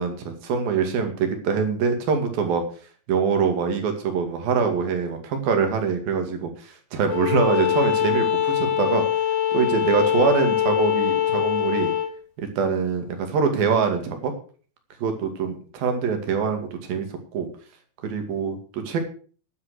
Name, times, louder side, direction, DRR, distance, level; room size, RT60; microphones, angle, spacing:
voice 1, 0.0-2.6 3.1-9.0 9.5-11.9 12.4-14.3 15.0-17.1 17.3-17.5 18.0-19.0, right 6 dB, 65° right, 5 dB, 4.0 m, -24 dB
Bowed string instrument, 7.1-12.1, left 11 dB, 75° left, 3.2 m, -23 dB
11.0 x 10.5 x 6.6 m, 0.43 s
omnidirectional pair, 4.6 m